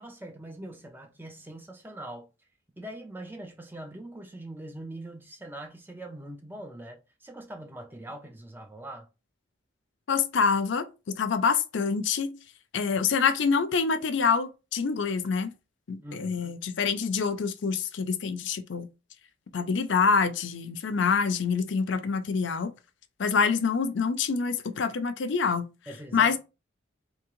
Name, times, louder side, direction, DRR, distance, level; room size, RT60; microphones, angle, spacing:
voice 1, 0.0-2.3 2.8-9.1 16.0-16.6 25.9-26.4, right 1 dB, 10° right, 0.5 m, -42 dB
voice 2, 10.1-12.3 12.7-15.5 15.9-18.9 19.5-22.7 23.2-25.7 26.1-26.4, left 5 dB, 65° left, 0.5 m, -26 dB
3.6 x 2.7 x 3.0 m
head